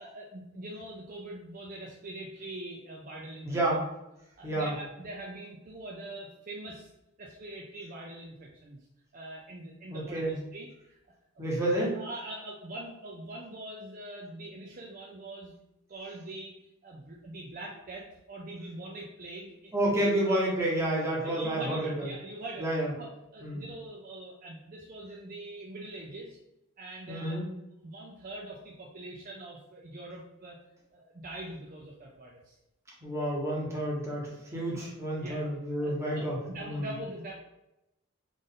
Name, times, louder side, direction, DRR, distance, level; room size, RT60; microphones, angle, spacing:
voice 1, 0.0-3.6 4.4-6.9 7.2-8.8 9.1-11.0 11.3-11.4 11.7-15.5 15.9-19.7 20.0-20.1 21.2-22.7 23.0-26.4 26.8-27.4 27.8-30.6 30.9-32.6 34.5-34.9 35.2-35.4 35.8-37.3, right 1 dB, 40° right, -2 dB, 0.5 m, -43 dB
voice 2, 3.4-3.8 4.4-4.7 9.9-10.4 11.4-11.9 19.7-22.0 22.6-22.9 23.4-23.6 27.1-27.5 33.0-36.9, right 1 dB, 15° right, -5 dB, 1.1 m, -30 dB
3.6 x 2.5 x 3.7 m, 0.88 s
head